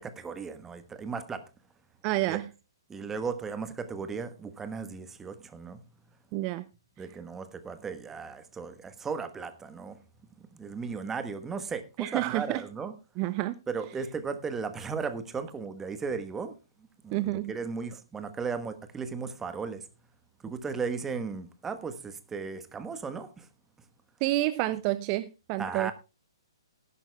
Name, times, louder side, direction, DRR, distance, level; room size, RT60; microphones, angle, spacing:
voice 1, 0.0-1.4 2.3-2.4 2.9-5.8 7.0-10.0 10.5-12.9 13.7-16.5 17.0-19.9 20.4-23.5 25.6-25.9, right 5 dB, 10° right, 1.2 m, -36 dB
voice 2, 2.0-2.5 6.3-6.6 12.0-12.6 13.2-13.6 17.1-17.5 24.2-25.9, right 17 dB, 30° right, 0.5 m, -29 dB
19.0 x 11.0 x 2.3 m
hypercardioid pair, 130°, 3 cm